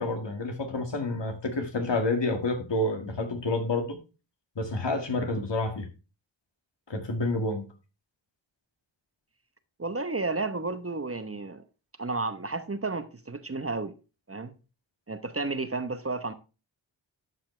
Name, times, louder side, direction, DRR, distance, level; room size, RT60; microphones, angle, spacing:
voice 1, 0.0-4.0 4.6-5.9 6.9-7.6, left 2 dB, 65° left, 2.0 m, -29 dB
voice 2, 9.8-11.6 12.0-13.9 14.3-14.5 15.1-16.3, right 3 dB, 30° right, 0.9 m, -32 dB
11.5 x 5.7 x 3.2 m
cardioid pair, 45°, 46 cm